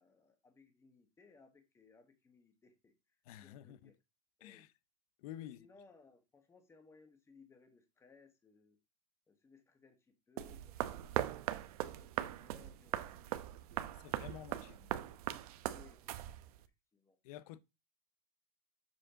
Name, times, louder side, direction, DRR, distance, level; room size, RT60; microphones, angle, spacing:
voice 1, 0.0-2.9 3.4-3.9 4.4-4.7 5.4-8.8 9.3-12.1 12.4-13.3 13.7-14.6 15.7-16.5 16.9-17.2, left 4 dB, 15° left, 1.3 m, -64 dB
voice 2, 3.3-3.9 4.4-4.7 5.2-5.7 14.0-14.9 17.2-17.6, left 12 dB, 75° left, 0.7 m, -50 dB
sound 1, 10.4-16.7, right 13 dB, 85° right, 0.8 m, -40 dB
7.2 x 5.1 x 3.8 m
supercardioid pair, 145°, 19 cm